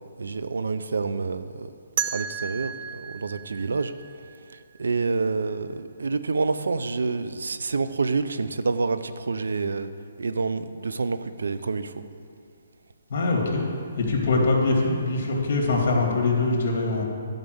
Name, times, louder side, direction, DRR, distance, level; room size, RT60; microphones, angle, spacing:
voice 1, 0.2-1.7 2.0-9.9 10.2-12.0, right 4 dB, 85° right, 12 dB, 0.5 m, -28 dB
sound 1, 2.0-4.8, right 8 dB, 40° right, 0.5 m, -33 dB
voice 2, 13.1-13.7 14.0-17.0, left 3 dB, 50° left, 0 dB, 2.5 m, -23 dB
10.5 x 5.2 x 7.9 m, 2.4 s
hypercardioid pair, 160°, 0 cm